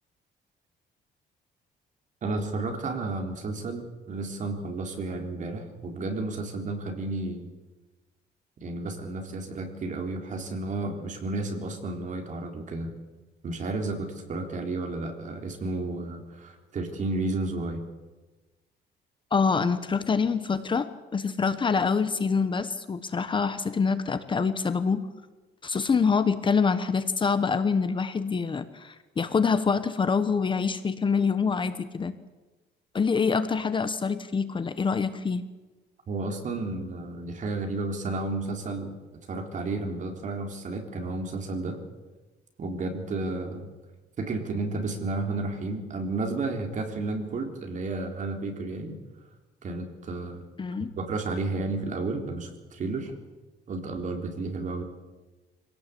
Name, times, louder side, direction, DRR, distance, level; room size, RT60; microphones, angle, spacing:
voice 1, 2.2-7.5 8.6-12.9 13.4-17.8 36.1-39.0 39.3-41.8 42.6-43.7 44.2-49.0 49.6-50.4 51.0-53.1 53.7-54.8, right 3 dB, 45° right, 4 dB, 3.9 m, -32 dB
voice 2, 19.3-25.1 25.6-32.1 32.9-35.4 50.6-50.9, left 5 dB, 25° left, 11 dB, 1.1 m, -26 dB
25.5 x 17.5 x 8.4 m, 1.2 s
cardioid pair, 150°, 18 cm